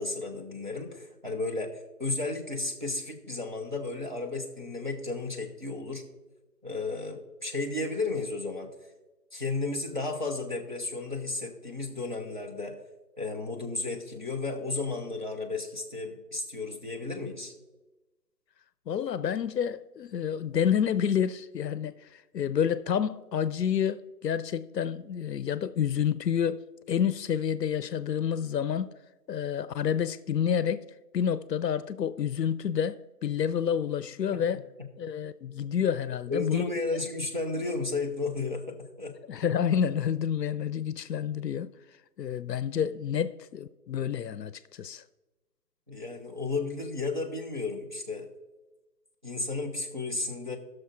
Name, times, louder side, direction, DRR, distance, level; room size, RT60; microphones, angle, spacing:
voice 1, 0.0-6.0 6.6-8.7 9.3-12.8 13.2-17.5 34.3-34.4 36.3-39.1 45.9-48.3 49.2-50.6, left 3 dB, 30° right, 0.7 m, -33 dB
voice 2, 18.9-28.9 29.3-30.8 31.1-34.6 35.0-36.7 39.3-41.7 42.2-45.0, left 8 dB, 85° left, 0.6 m, -29 dB
17.5 x 6.3 x 2.5 m
figure-of-eight pair, 170°, 48 cm